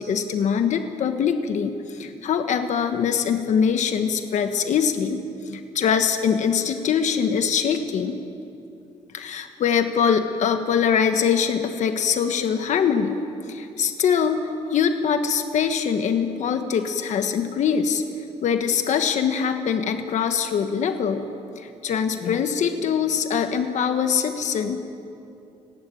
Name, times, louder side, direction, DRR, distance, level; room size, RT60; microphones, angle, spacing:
voice 1, 0.0-8.2 9.1-13.2 13.5-14.4 14.7-18.0 18.4-21.3 21.6-24.8, left 7 dB, 75° left, 7 dB, 1.3 m, -23 dB
30.0 x 11.5 x 9.2 m, 2.7 s
cardioid pair, 125°, 13 cm